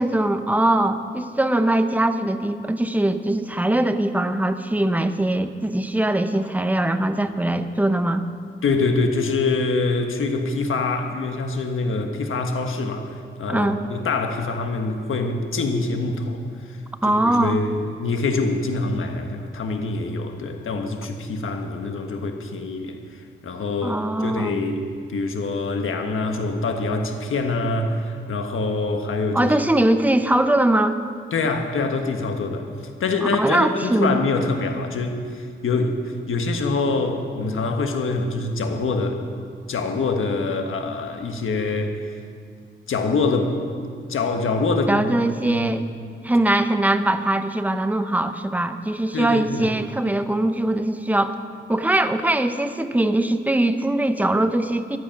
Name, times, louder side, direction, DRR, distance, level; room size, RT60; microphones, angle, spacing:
voice 1, 0.0-8.2 13.5-13.8 17.0-17.6 23.8-24.6 29.3-31.0 33.2-34.2 44.9-45.8 46.2-51.3 51.7-55.0, right 1 dB, 10° right, 9 dB, 0.8 m, -21 dB
voice 2, 8.6-13.1 13.4-16.5 17.1-23.0 23.4-29.5 31.3-32.7 33.0-36.0 36.3-39.2 39.7-42.0 42.9-43.5 44.1-45.2 45.5-45.7 49.1-49.7, left 3 dB, 85° left, 5 dB, 1.4 m, -25 dB
14.0 x 12.0 x 5.9 m, 2.2 s
wide cardioid pair, 105°, 21 cm